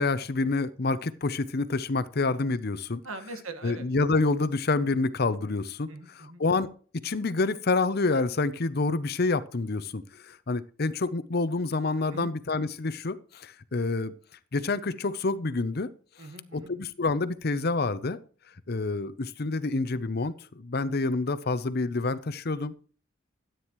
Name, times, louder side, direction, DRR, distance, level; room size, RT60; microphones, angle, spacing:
voice 1, 0.0-3.0 3.6-5.9 6.4-6.7 7.0-14.1 14.5-15.9 16.5-18.2 18.7-22.7, left 3 dB, 50° left, 14 dB, 0.7 m, -28 dB
voice 2, 3.0-3.9 5.9-6.4 12.1-12.4 16.2-16.7, right 2 dB, 85° right, 8 dB, 1.6 m, -41 dB
13.0 x 9.2 x 3.1 m, 0.41 s
head